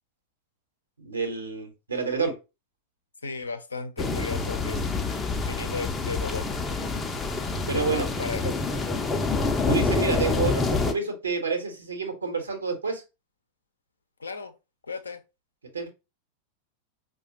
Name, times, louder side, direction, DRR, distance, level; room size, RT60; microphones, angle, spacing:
voice 1, 1.0-2.3 7.7-8.1 9.7-13.0 15.7-15.9, right 4 dB, 75° right, 1.0 m, -28 dB
voice 2, 3.2-4.8 5.4-6.7 7.7-8.6 14.2-14.5 14.8-15.2, left 4 dB, 75° left, 0.5 m, -35 dB
sound 1, 4.0-10.9, left 3 dB, 15° left, 0.5 m, -27 dB
4.8 x 2.2 x 2.8 m
figure-of-eight pair, 90°, 0 cm